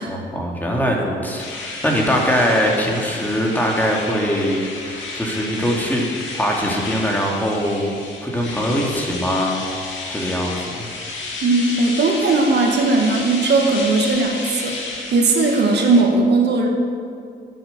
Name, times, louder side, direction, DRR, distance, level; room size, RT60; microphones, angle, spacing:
voice 1, 0.1-6.1 6.3-9.6 10.1-10.9, equal, 10° left, -1 dB, 2.3 m, -22 dB
sound 1, 1.4-16.0, left 3 dB, 70° left, 2.4 m, -32 dB
voice 2, 11.4-14.7 15.1-16.7, right 3 dB, 60° right, 1 dB, 1.8 m, -17 dB
10.5 x 9.3 x 6.7 m, 2.3 s
cardioid pair, 90°, 20 cm